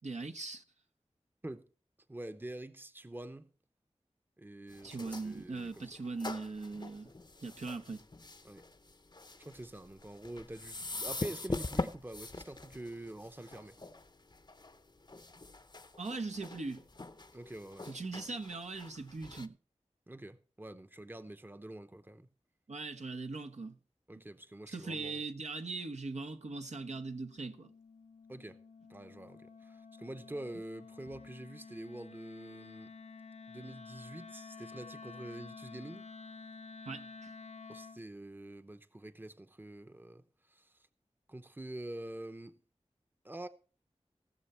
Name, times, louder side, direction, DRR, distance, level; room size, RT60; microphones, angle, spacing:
voice 1, 0.0-0.6 4.8-7.1 7.4-8.0 16.0-16.8 17.8-19.6 22.7-23.8 24.7-27.7 36.9-37.3, right 3 dB, 80° right, 1.1 m, -40 dB
voice 2, 2.1-3.5 4.4-5.9 8.4-8.6 9.4-13.8 17.3-18.3 20.1-22.3 24.1-25.2 28.3-28.6 28.9-32.9 33.5-36.1 37.7-40.2 40.5-40.7 41.3-42.6 43.2-43.5, right 1 dB, 15° right, 0.8 m, -46 dB
sound 1, 4.7-19.5, left 2 dB, 40° left, 0.7 m, -44 dB
Wind instrument woodwind instrument, 26.6-38.1, left 4 dB, 75° left, 0.6 m, -51 dB
18.0 x 6.9 x 4.3 m
wide cardioid pair, 65°, 12 cm